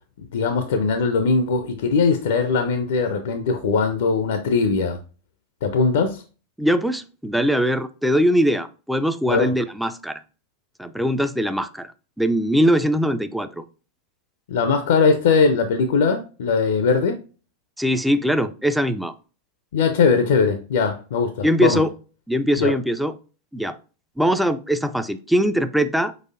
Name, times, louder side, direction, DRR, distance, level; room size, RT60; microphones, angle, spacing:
voice 1, 0.3-5.0 5.6-6.2 9.3-9.5 14.5-17.2 19.7-21.8 22.6-22.7, left 5 dB, 55° left, 8 dB, 0.4 m, -20 dB
voice 2, 6.6-10.2 10.8-11.9 12.2-13.6 17.8-19.1 21.4-21.9 22.3-23.1 23.5-23.8 24.2-26.1, equal, ahead, 10 dB, 0.3 m, -21 dB
4.8 x 4.0 x 2.5 m, 0.35 s
figure-of-eight pair, 90°, 0 cm